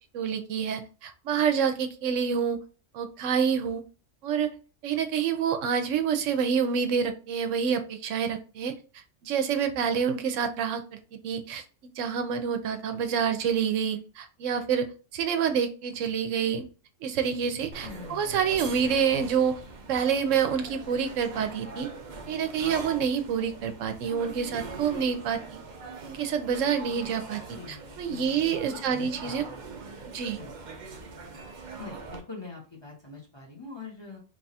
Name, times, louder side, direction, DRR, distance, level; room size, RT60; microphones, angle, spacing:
voice 1, 0.1-2.6 2.9-3.8 4.2-4.5 4.8-8.7 9.2-11.0 11.2-11.6 12.0-16.7 17.0-21.9 22.3-25.6 26.0-29.4 30.1-30.4, right 7 dB, 90° right, 8 dB, 1.0 m, -27 dB
sound 1, 17.7-32.2, right 4 dB, 50° right, 0.6 m, -42 dB
voice 2, 17.8-18.4 27.5-29.6 30.4-30.5 31.8-34.2, left 4 dB, 25° left, -2 dB, 0.9 m, -44 dB
3.0 x 2.3 x 4.1 m, 0.35 s
omnidirectional pair, 1.3 m